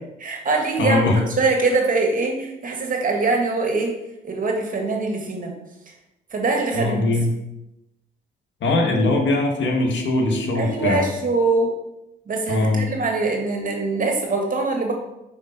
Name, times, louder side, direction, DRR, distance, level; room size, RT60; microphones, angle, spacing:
voice 1, 0.2-1.0 1.4-4.0 4.2-5.5 6.3-7.1 10.6-11.7 12.3-14.9, right 3 dB, 45° right, 1 dB, 2.1 m, -23 dB
voice 2, 0.8-1.2 6.7-7.3 8.6-11.1 12.5-12.9, left 2 dB, 70° left, 1 dB, 1.8 m, -21 dB
6.7 x 5.5 x 5.2 m, 0.92 s
cardioid pair, 90°, 20 cm